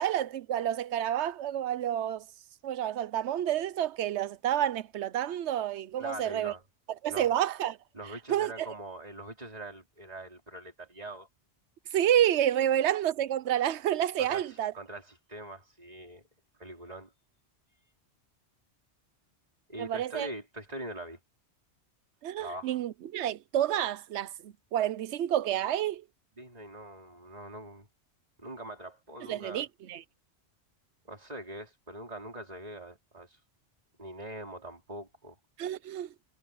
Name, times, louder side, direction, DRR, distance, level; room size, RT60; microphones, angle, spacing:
voice 1, 0.0-2.3 2.6-6.5 7.0-7.8 8.3-8.7 11.9-14.7 19.8-20.3 22.2-26.0 29.3-30.0 35.6-36.1, right 11 dB, 80° right, 1.0 m, -29 dB
voice 2, 6.0-6.6 7.1-7.3 7.9-11.3 14.2-16.2 16.6-17.1 19.7-21.2 22.4-22.8 26.4-27.9 28.4-29.6 31.1-33.4 34.0-35.4, right 1 dB, 35° right, 4.5 m, -43 dB
omnidirectional pair, 1.1 m